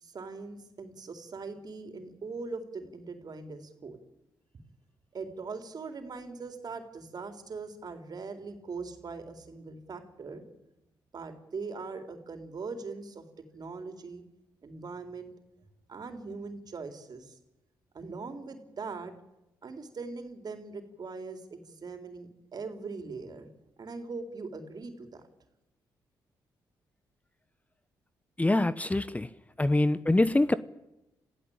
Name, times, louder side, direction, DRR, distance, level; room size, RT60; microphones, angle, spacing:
voice 1, 0.0-4.0 5.1-10.4 11.1-13.2 13.5-14.2 14.6-15.3 15.9-17.4 17.9-19.1 19.6-23.5 23.8-25.2, right 4 dB, 55° right, 7 dB, 4.0 m, -41 dB
voice 2, 28.4-29.3 29.6-30.6, left 2 dB, 15° left, 16 dB, 1.0 m, -24 dB
26.5 x 16.0 x 8.9 m, 0.92 s
supercardioid pair, 55°, 8 cm